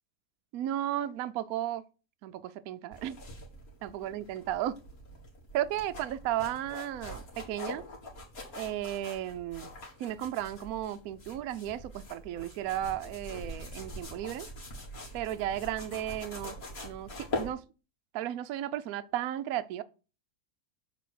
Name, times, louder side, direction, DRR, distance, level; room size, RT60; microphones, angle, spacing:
voice 1, 0.5-1.8 2.2-3.2 3.8-4.8 5.5-7.8 8.5-9.7 10.0-14.5 15.1-16.6 16.8-17.6 18.1-19.8, right 12 dB, 70° right, 1.0 m, -34 dB
sound 1, 2.9-17.5, left 1 dB, 55° left, 2.4 m, -43 dB
7.1 x 4.2 x 6.2 m
omnidirectional pair, 1.8 m